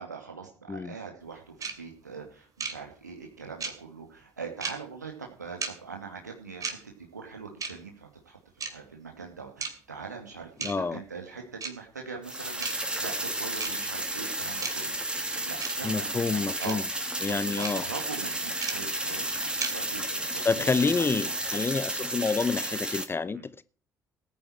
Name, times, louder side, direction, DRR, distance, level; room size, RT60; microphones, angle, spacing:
voice 1, 0.0-21.3 23.3-23.5, right 5 dB, 85° right, 2.4 m, -42 dB
sound 1, 1.6-1.7 2.6-2.7 3.6-3.7 4.6-4.7 5.6-5.7 6.6-6.7 7.6-7.7 8.6-8.7 9.6-9.7 10.6-10.7 11.6-11.7 12.6-12.7 13.6-13.7 14.6-14.7 15.6-15.7 16.6-16.7 17.6-17.7 18.6-18.7 19.6-19.7, right 5 dB, 40° right, 3.1 m, -32 dB
voice 2, 10.6-11.0 15.8-16.8 17.2-17.8 20.4-23.6, left 4 dB, 25° left, 0.8 m, -28 dB
sound 2, 12.2-23.0, right 1 dB, 10° right, 2.8 m, -32 dB
19.0 x 9.3 x 4.6 m
figure-of-eight pair, 50°, 9 cm